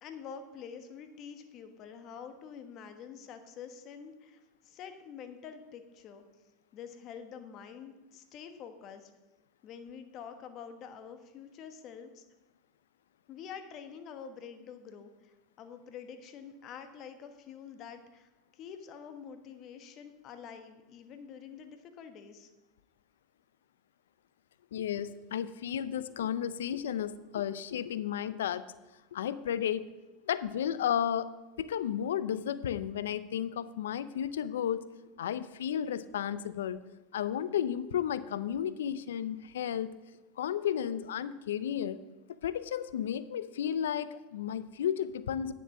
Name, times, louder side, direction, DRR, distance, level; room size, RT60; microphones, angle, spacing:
voice 1, 0.0-6.2 6.7-9.1 9.6-12.2 13.3-22.5, left 7 dB, 50° left, 8 dB, 1.3 m, -47 dB
voice 2, 24.7-28.6 29.1-29.9 30.2-31.3 31.6-34.8 35.2-36.8 37.1-39.9 40.4-42.0 42.4-45.5, left 9 dB, 80° left, 15 dB, 0.5 m, -33 dB
9.6 x 7.0 x 6.0 m, 1.1 s
hypercardioid pair, 85°, 0 cm